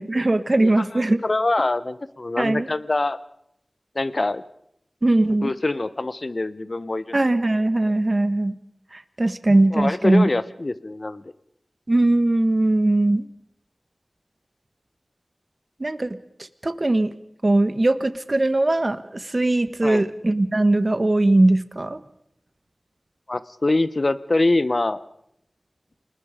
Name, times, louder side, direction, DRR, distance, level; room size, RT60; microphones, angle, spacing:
voice 1, 0.0-1.2 2.4-2.7 5.0-5.5 7.1-8.6 8.9-10.3 11.9-13.3 15.8-16.2 16.6-17.1 17.4-22.0, right 2 dB, 50° right, 12 dB, 1.4 m, -20 dB
voice 2, 0.6-3.2 3.9-4.4 5.4-7.1 9.7-11.2 19.8-20.1 23.3-25.0, left 2 dB, 55° left, 16 dB, 1.1 m, -24 dB
29.5 x 21.0 x 5.1 m, 0.74 s
wide cardioid pair, 45°, 0 cm